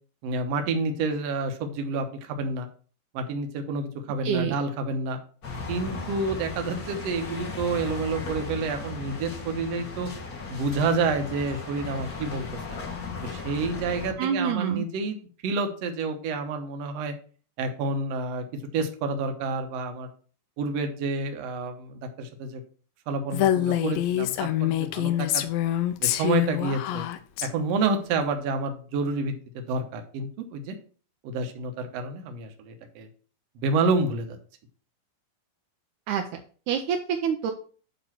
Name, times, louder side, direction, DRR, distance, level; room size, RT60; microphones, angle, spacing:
voice 1, 0.2-2.7 3.1-5.2 5.7-10.1 10.5-12.8 13.2-15.2 15.4-17.1 17.6-18.4 18.7-20.1 20.6-22.6 23.1-25.5 26.0-27.1 27.4-30.7 31.2-33.1 33.5-34.4, right 3 dB, 65° right, 5 dB, 1.6 m, -29 dB
voice 2, 4.2-4.6 14.2-14.8 36.1-36.2 36.7-37.5, right 8 dB, 85° right, 5 dB, 1.7 m, -26 dB
sound 1, 5.4-14.1, left 3 dB, 40° left, 1.4 m, -36 dB
Female speech woman speaking, 23.3-27.5, left 12 dB, 85° left, 2.4 m, -25 dB
9.2 x 3.1 x 5.9 m, 0.42 s
omnidirectional pair, 4.1 m